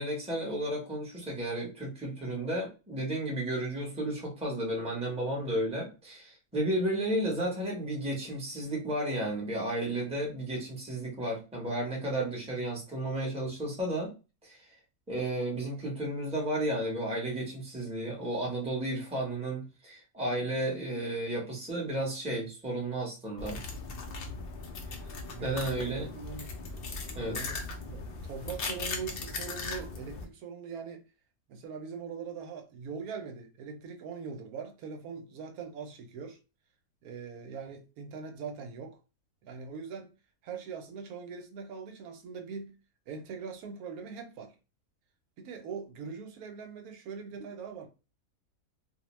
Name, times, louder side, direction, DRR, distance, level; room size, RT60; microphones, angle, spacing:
voice 1, 0.0-14.1 14.4-14.6 15.1-23.6 25.4-26.1 27.1-27.4, right 1 dB, 5° right, 0.7 m, -33 dB
sound 1, 23.4-30.3, left 3 dB, 65° left, 0.6 m, -38 dB
voice 2, 25.3-26.5 27.3-31.0 31.5-36.4 37.0-39.0 39.4-40.1 40.4-42.8 43.1-44.5 45.4-47.9, right 5 dB, 80° right, 1.1 m, -42 dB
2.6 x 2.1 x 3.0 m
omnidirectional pair, 1.5 m